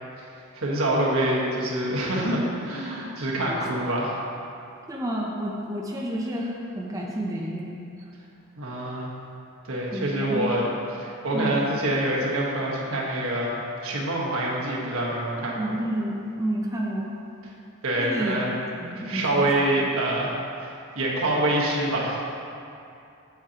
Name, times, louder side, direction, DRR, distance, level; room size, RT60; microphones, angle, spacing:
voice 1, 0.5-4.2 8.6-9.1 9.6-10.7 10.9-15.6 17.8-18.5 18.9-20.3 20.6-22.3, right 1 dB, 75° right, -4 dB, 1.3 m, -26 dB
voice 2, 4.9-7.8 9.9-10.6 11.3-11.6 15.4-17.1 18.0-18.4 18.8-19.5, right 1 dB, 15° right, -3 dB, 0.6 m, -30 dB
8.1 x 7.2 x 2.9 m, 2.6 s
head